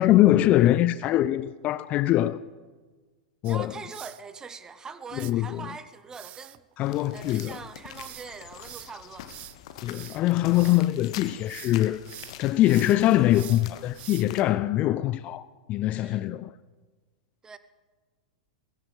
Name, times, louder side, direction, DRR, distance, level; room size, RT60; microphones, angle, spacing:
voice 1, 0.0-2.4 3.4-3.7 5.1-5.7 6.8-7.6 9.8-12.0 12.4-16.5, left 14 dB, 35° left, 0.3 m, -23 dB
sound 1, 3.4-4.2 5.2-5.3 6.1-10.9 11.3-11.8 12.0-14.5, right 16 dB, 35° right, 0.4 m, -45 dB
voice 2, 3.5-6.6 7.1-9.3 16.0-16.3 17.4-17.6, right 5 dB, 15° right, 0.8 m, -42 dB
sound 2, 6.8-14.4, left 11 dB, 55° left, 0.8 m, -45 dB
18.0 x 16.0 x 3.3 m
figure-of-eight pair, 95°, 4 cm